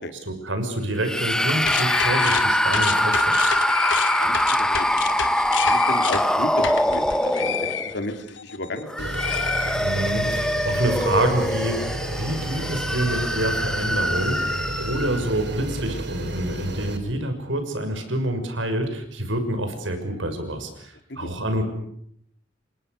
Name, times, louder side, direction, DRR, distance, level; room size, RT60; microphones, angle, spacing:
voice 1, 0.3-3.4 9.8-14.4 14.8-21.6, right 1 dB, 85° right, 7 dB, 6.3 m, -27 dB
sound 1, 1.0-8.1 8.8-15.3, equal, 5° left, 1.2 m, -23 dB
sound 2, 1.4-8.8 9.1-10.3, left 8 dB, 85° left, 2.2 m, -30 dB
voice 2, 4.2-9.2 21.1-21.3, left 1 dB, 65° left, 7 dB, 3.6 m, -34 dB
sound 3, 9.0-17.0, right 1 dB, 65° right, 3.8 m, -32 dB
29.5 x 25.5 x 6.9 m, 0.69 s
head